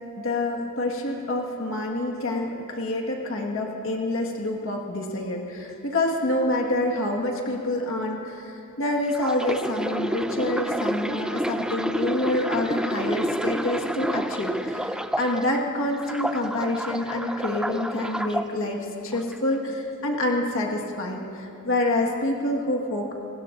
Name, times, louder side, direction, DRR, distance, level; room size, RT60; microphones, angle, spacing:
voice 1, 0.2-23.1, left 1 dB, 65° left, 0 dB, 1.6 m, -27 dB
sound 1, 9.1-15.6 16.0-18.5 19.1-19.4, equal, 5° right, 0.3 m, -29 dB
26.0 x 20.0 x 2.6 m, 2.8 s
head